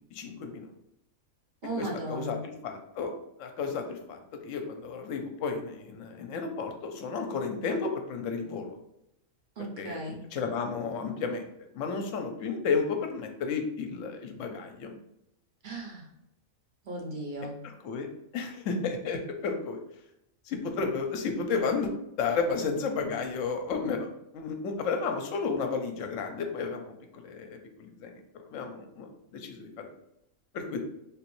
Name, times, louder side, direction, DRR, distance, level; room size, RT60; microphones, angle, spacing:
voice 1, 0.1-0.7 1.8-3.1 3.4-8.7 9.8-11.5 11.7-15.0 17.6-18.1 18.3-19.8 20.5-21.9 22.2-24.1 24.3-28.2 28.5-29.9 30.5-30.8, left 5 dB, 75° left, 5 dB, 0.9 m, -32 dB
voice 2, 1.6-2.4 9.6-10.2 15.6-16.0 16.9-17.6, right 1 dB, 45° right, -1 dB, 0.7 m, -36 dB
3.4 x 3.0 x 3.0 m, 0.83 s
omnidirectional pair, 1.4 m